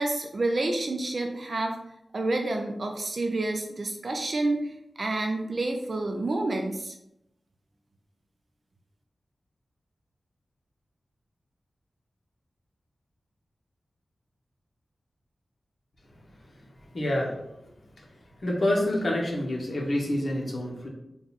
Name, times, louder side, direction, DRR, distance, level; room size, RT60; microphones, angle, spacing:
voice 1, 0.0-1.8 2.1-6.9, right 2 dB, 55° right, 3 dB, 0.4 m, -29 dB
voice 2, 16.9-17.3 18.4-20.9, left 1 dB, 50° left, -2 dB, 1.0 m, -27 dB
3.7 x 2.4 x 4.0 m, 0.83 s
wide cardioid pair, 100°, 0 cm